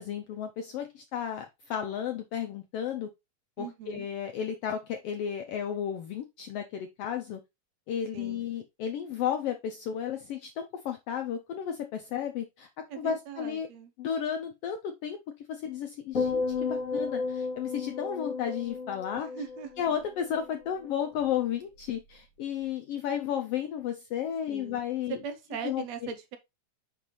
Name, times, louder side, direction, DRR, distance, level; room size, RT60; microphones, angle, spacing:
voice 1, 0.0-3.1 3.6-7.4 7.9-13.7 14.0-19.3 19.8-25.2 25.6-26.1, left 9 dB, 90° left, 1.3 m, -33 dB
voice 2, 3.6-4.1 8.1-8.5 12.9-13.9 19.2-19.7 24.5-24.8 25.1-26.4, right 7 dB, 75° right, 1.7 m, -40 dB
sound 1, 16.1-20.5 20.8-21.3, left 4 dB, 25° left, 3.5 m, -33 dB
5.7 x 5.4 x 3.1 m
omnidirectional pair, 3.4 m